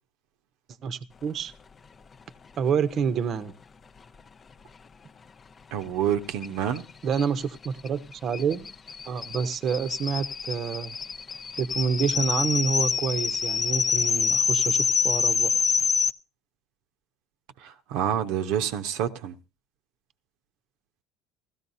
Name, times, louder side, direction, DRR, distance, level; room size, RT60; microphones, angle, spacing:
voice 1, 0.8-1.5 2.6-3.5 7.0-8.7 9.1-11.0 11.6-15.5, right 6 dB, 45° right, 0.8 m, -28 dB
voice 2, 5.7-6.8 17.6-19.3, right 9 dB, 75° right, 0.8 m, -28 dB
sound 1, 6.4-6.5 6.7-6.8 7.1-16.1, left 5 dB, 30° left, 0.5 m, -26 dB
16.5 x 13.5 x 2.7 m
supercardioid pair, 115°, 0 cm